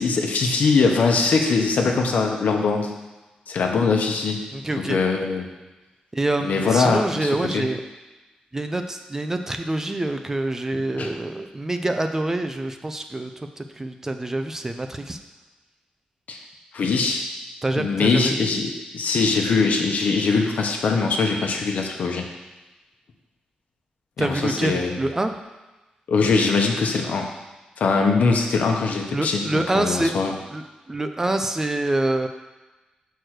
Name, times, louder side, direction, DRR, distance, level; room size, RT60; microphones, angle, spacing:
voice 1, 0.0-2.9 3.5-4.4 4.8-5.5 6.4-7.6 10.9-11.1 16.3-16.4 16.7-17.2 17.8-22.3 24.2-25.0 26.1-27.3 27.8-30.3, left 4 dB, 70° left, 2 dB, 1.0 m, -22 dB
voice 2, 4.5-5.0 6.1-7.8 8.5-15.2 17.6-18.5 24.2-25.3 29.1-30.1 30.5-32.3, right 2 dB, 15° right, 6 dB, 0.5 m, -26 dB
6.1 x 4.6 x 6.5 m, 1.1 s
wide cardioid pair, 135°, 3 cm